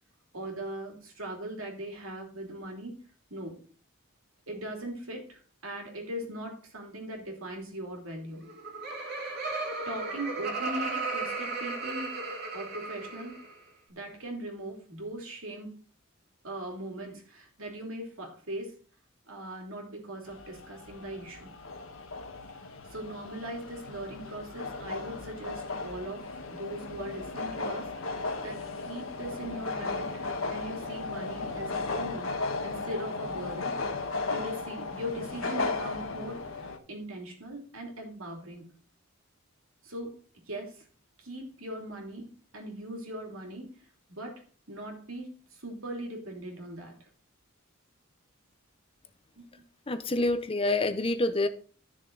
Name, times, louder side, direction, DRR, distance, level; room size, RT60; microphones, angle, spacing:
voice 1, 0.3-2.9 3.3-3.6 4.5-8.4 9.9-12.2 12.5-13.4 13.9-15.8 16.4-18.8 19.3-21.5 22.9-32.3 32.6-33.8 34.3-36.4 36.9-38.7 39.8-40.2 40.5-40.9 41.2-42.3 42.5-43.7 44.1-47.0 49.4-49.6, right 1 dB, 70° right, 3.0 m, -40 dB
Laughter, 8.3-13.6, right 3 dB, 50° right, 2.7 m, -35 dB
sound 1, 20.3-36.8, left 3 dB, 65° left, 1.5 m, -36 dB
voice 2, 49.9-51.5, left 2 dB, 25° left, 0.7 m, -27 dB
13.0 x 6.6 x 3.9 m
head